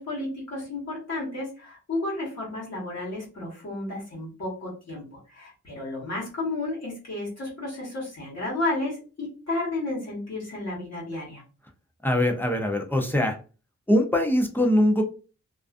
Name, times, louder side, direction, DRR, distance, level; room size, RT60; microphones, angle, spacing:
voice 1, 0.0-11.4, left 2 dB, 60° left, -4 dB, 1.2 m, -32 dB
voice 2, 12.0-13.4 13.9-15.0, left 1 dB, 5° left, 3 dB, 0.4 m, -22 dB
2.4 x 2.3 x 2.4 m, 0.35 s
wide cardioid pair, 140°, 29 cm